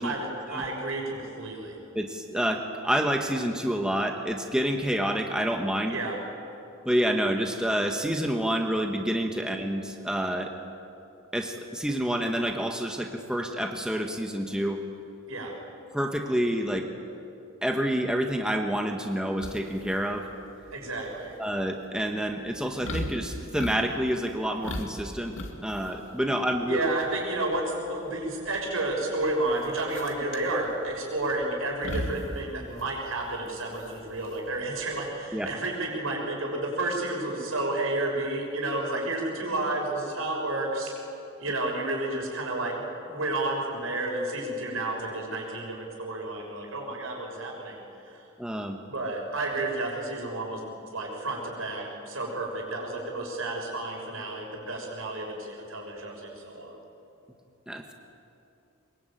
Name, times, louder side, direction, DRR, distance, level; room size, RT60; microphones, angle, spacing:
voice 1, 0.0-1.8 5.9-6.2 15.3-15.5 20.7-21.3 26.7-40.9 41.4-47.8 48.0-48.2 48.9-50.6 50.9-56.8, right 2 dB, 75° right, 0 dB, 6.5 m, -31 dB
voice 2, 1.9-6.0 6.8-10.5 11.3-14.8 15.9-16.9 17.6-20.3 21.4-25.4 25.6-26.8 35.3-35.5 48.4-48.8 57.7-57.9, equal, 5° right, 3 dB, 1.4 m, -28 dB
sound 1, 19.4-35.0, left 1 dB, 65° left, 2.7 m, -39 dB
23.5 x 22.0 x 9.1 m, 2.6 s
head